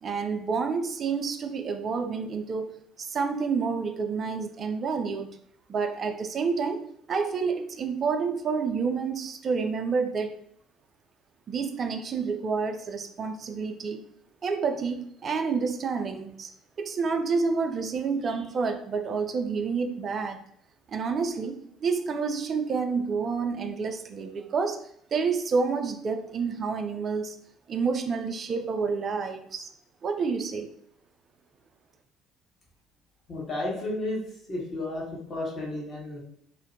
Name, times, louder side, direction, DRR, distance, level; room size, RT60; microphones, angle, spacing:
voice 1, 0.0-5.4 5.7-10.4 11.5-14.0 14.4-16.5 16.8-20.4 20.9-27.4 27.7-29.7 30.0-30.7, right 5 dB, 45° right, 6 dB, 0.3 m, -29 dB
voice 2, 33.3-36.2, left 2 dB, 40° left, -3 dB, 1.2 m, -33 dB
2.5 x 2.1 x 2.6 m, 0.67 s
hypercardioid pair, 55°, 0 cm